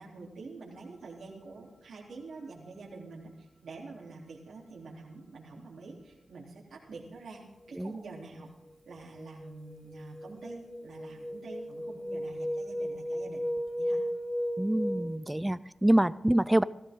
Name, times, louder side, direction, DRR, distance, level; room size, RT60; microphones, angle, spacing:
voice 1, 0.0-8.5 8.8-13.4 13.8-14.0, right 3 dB, 90° right, -3 dB, 3.3 m, -46 dB
sound 1, 8.1-8.5 8.9-15.2, equal, 5° left, 0.9 m, -35 dB
voice 2, 14.6-16.6, right 1 dB, 10° right, 18 dB, 0.4 m, -26 dB
17.0 x 15.5 x 3.8 m, 1.0 s
wide cardioid pair, 75°, 0 cm